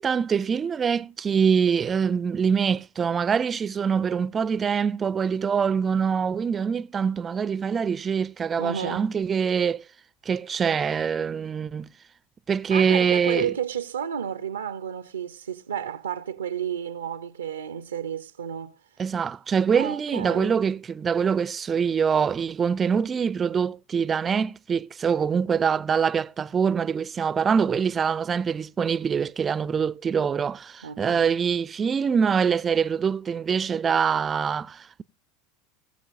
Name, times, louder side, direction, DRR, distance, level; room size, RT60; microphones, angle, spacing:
voice 1, 0.0-9.8 10.3-11.9 12.5-13.5 19.0-35.0, right 6 dB, 30° right, 0.4 m, -24 dB
voice 2, 8.6-9.1 12.7-18.8 19.7-20.5 30.8-31.3, right 8 dB, 85° right, 0.5 m, -31 dB
19.5 x 7.2 x 2.5 m
hypercardioid pair, 85°, 0 cm